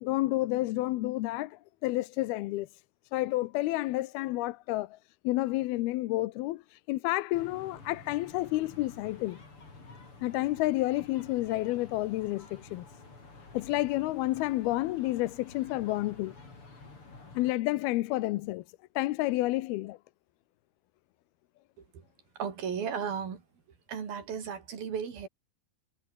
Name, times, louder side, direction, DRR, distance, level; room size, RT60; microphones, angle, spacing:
voice 1, 0.0-1.5 1.8-2.7 3.1-4.9 5.3-6.6 6.9-9.4 10.2-12.5 12.7-12.9 13.5-16.3 17.4-18.6 19.0-20.0, left 18 dB, 85° left, 2.7 m, -30 dB
sound 1, 7.3-17.5, left 3 dB, 35° left, 6.1 m, -51 dB
voice 2, 22.4-23.4 23.9-25.3, right 7 dB, 70° right, 5.4 m, -35 dB
omnidirectional pair, 4.4 m